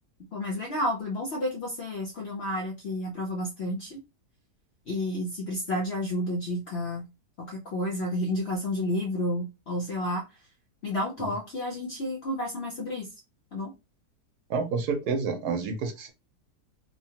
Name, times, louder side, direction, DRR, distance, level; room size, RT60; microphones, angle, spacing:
voice 1, 0.3-4.0 4.9-7.0 7.4-10.2 10.8-13.1 13.5-13.7, left 1 dB, 65° left, 0.6 m, -31 dB
voice 2, 14.5-16.1, right 5 dB, 70° right, 1.1 m, -29 dB
3.0 x 2.2 x 2.7 m
omnidirectional pair, 1.8 m